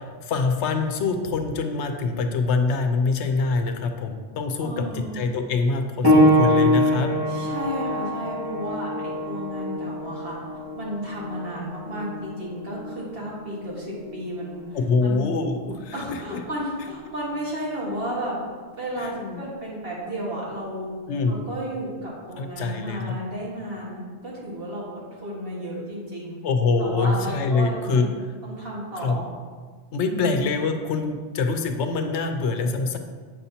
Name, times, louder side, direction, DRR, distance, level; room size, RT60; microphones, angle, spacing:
voice 1, 0.0-7.1 14.7-16.4 19.0-19.4 21.1-21.4 22.4-23.1 26.4-28.1 29.0-29.2 29.9-33.0, left 4 dB, 85° left, 6 dB, 0.9 m, -25 dB
voice 2, 4.6-5.2 7.3-10.4 10.8-15.2 15.9-18.3 18.8-20.9 21.3-26.4 26.8-28.1 28.4-29.3 30.0-30.4, equal, 60° right, -5 dB, 1.8 m, -33 dB
sound 1, 6.0-16.3 17.2-17.3 18.1-18.2, equal, 25° right, 0.9 m, -25 dB
7.5 x 5.6 x 2.8 m, 1.5 s
omnidirectional pair, 1.1 m